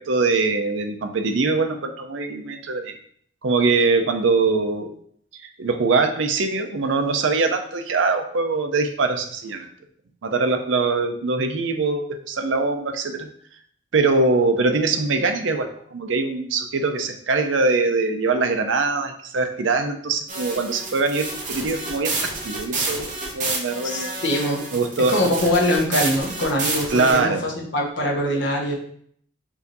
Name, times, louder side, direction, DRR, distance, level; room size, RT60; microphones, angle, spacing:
voice 1, 0.0-3.0 3.4-4.9 5.3-9.7 10.2-13.3 13.9-24.1 24.7-25.3 26.9-27.4, right 3 dB, 80° right, 7 dB, 0.5 m, -22 dB
sound 1, 20.3-27.2, right 3 dB, 40° right, 0.9 m, -29 dB
voice 2, 23.8-24.6 25.1-28.8, left 1 dB, 70° left, -1 dB, 1.1 m, -23 dB
4.7 x 2.6 x 4.0 m, 0.62 s
head